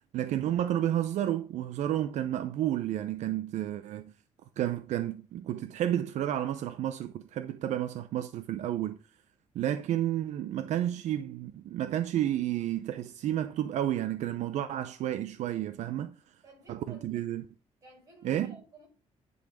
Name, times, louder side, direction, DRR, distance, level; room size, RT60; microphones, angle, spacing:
voice 1, 0.1-4.1 4.6-9.0 9.5-16.2 16.7-17.5 18.2-18.6, right 12 dB, 75° right, 0.6 m, -31 dB
voice 2, 16.4-17.2 17.8-18.9, right 2 dB, 25° right, 5.5 m, -54 dB
10.0 x 4.2 x 5.1 m
cardioid pair, 180°, 12 cm